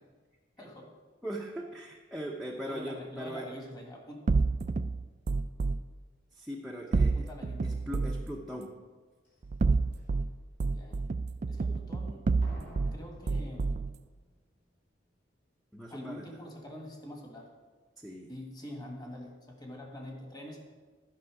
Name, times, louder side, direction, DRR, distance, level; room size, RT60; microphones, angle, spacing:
voice 1, 0.6-0.9 2.7-4.3 6.9-7.8 10.7-11.0 11.5-12.3 12.9-13.8 15.9-17.5 18.3-20.6, left 1 dB, 20° left, 0 dB, 1.6 m, -45 dB
voice 2, 1.2-3.5 6.3-7.3 7.6-8.7 15.7-16.3 18.0-18.3, equal, ahead, -1 dB, 0.7 m, -40 dB
sound 1, 4.3-5.8 6.9-8.2 9.4-10.3 10.6-12.9 13.3-13.9, right 3 dB, 40° right, 0.3 m, -28 dB
Slam, 9.2-9.3 10.0-10.3 12.4-14.3 14.5-14.6, equal, 60° left, 3.2 m, -49 dB
12.5 x 5.5 x 4.9 m, 1.3 s
head